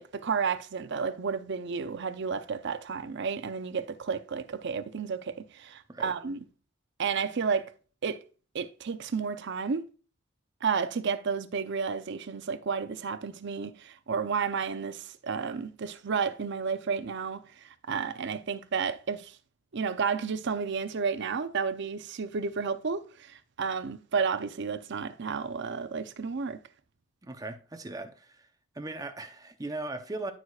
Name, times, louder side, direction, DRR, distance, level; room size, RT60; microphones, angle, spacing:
voice 1, 0.0-6.4 7.0-7.7 8.0-8.2 8.5-9.8 10.6-17.4 17.9-19.3 19.7-26.6, right 5 dB, 60° right, 0.6 m, -31 dB
voice 2, 27.2-28.5 28.7-30.3, right 2 dB, 20° right, 0.7 m, -38 dB
14.0 x 4.8 x 2.4 m
head